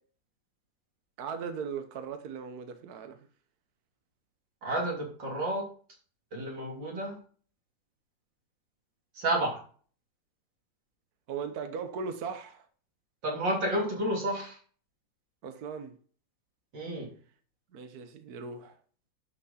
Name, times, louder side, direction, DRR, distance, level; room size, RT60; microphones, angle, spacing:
voice 1, 1.2-3.3 11.3-12.7 15.4-15.9 17.7-18.8, right 6 dB, 60° right, 1.4 m, -38 dB
voice 2, 4.6-5.6 6.3-7.2 9.2-9.6 13.2-14.6 16.7-17.1, right 1 dB, 85° right, 3.9 m, -30 dB
11.0 x 6.1 x 4.2 m
omnidirectional pair, 1.9 m